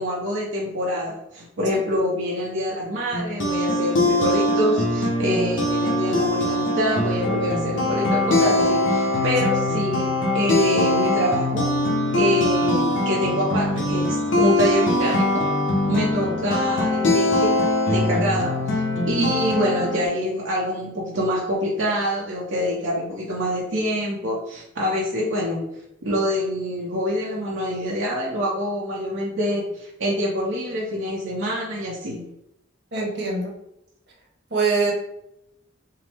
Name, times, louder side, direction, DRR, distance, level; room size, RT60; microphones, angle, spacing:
voice 1, 0.0-10.1 10.3-11.7 12.1-15.4 15.8-17.6 17.9-25.6 26.0-32.3, equal, 80° right, -4 dB, 0.8 m, -25 dB
sound 1, 3.1-20.1, left 2 dB, 80° left, 0.9 m, -22 dB
voice 2, 32.9-33.5 34.5-34.9, right 4 dB, 60° right, -1 dB, 1.1 m, -23 dB
5.7 x 2.0 x 3.4 m, 0.81 s
head